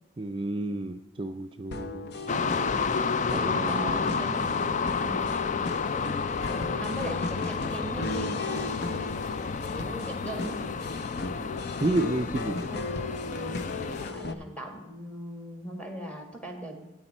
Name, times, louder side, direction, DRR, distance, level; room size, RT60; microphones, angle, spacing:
voice 1, 0.2-2.1 3.3-4.1 4.6-5.2 6.6-6.8 11.8-12.7, right 2 dB, 30° right, 6 dB, 0.4 m, -31 dB
sound 1, 1.7-14.3, left 3 dB, 60° left, 0.8 m, -36 dB
sound 2, 2.3-14.1, left 5 dB, 40° left, 0.4 m, -31 dB
voice 2, 3.6-4.5 5.0-5.3 6.8-8.7 9.7-10.6 12.7-12.9 14.0-16.7, right 1 dB, 5° left, 4 dB, 2.0 m, -39 dB
13.5 x 8.9 x 4.4 m, 1.1 s
head